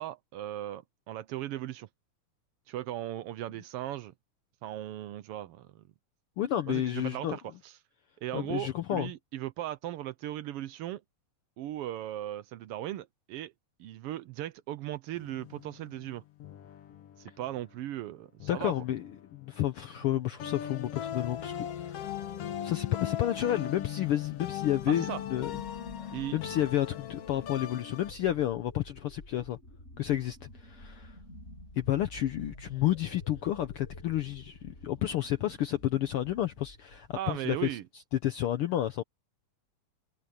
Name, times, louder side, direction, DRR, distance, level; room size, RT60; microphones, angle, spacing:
voice 1, 0.0-1.9 2.7-4.1 4.6-5.8 6.7-7.7 8.2-11.0 11.6-13.5 13.8-16.2 17.2-18.7 24.9-25.2 26.1-26.4 37.2-37.8, right 13 dB, 90° right, 1.3 m, -37 dB
voice 2, 6.4-7.4 8.3-9.1 18.5-22.1 22.6-25.6 26.0-29.6 30.0-31.2 31.8-37.8 38.1-39.0, left 12 dB, 80° left, 1.2 m, -31 dB
sound 1, 15.1-17.7 18.4-19.9 20.4-28.1, left 10 dB, 60° left, 2.0 m, -40 dB
sound 2, 19.9-37.4, left 1 dB, 20° left, 6.3 m, -51 dB
omnidirectional pair, 3.5 m